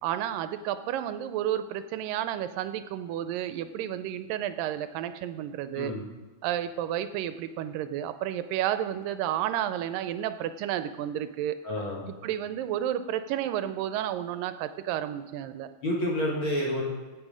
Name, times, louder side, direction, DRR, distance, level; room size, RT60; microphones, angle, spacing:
voice 1, 0.0-5.9 6.4-11.6 12.2-15.7, right 11 dB, 80° right, 11 dB, 2.1 m, -31 dB
voice 2, 11.6-12.0 15.8-16.8, equal, 50° left, -4 dB, 1.5 m, -29 dB
15.5 x 5.9 x 5.0 m, 1.3 s
omnidirectional pair, 4.1 m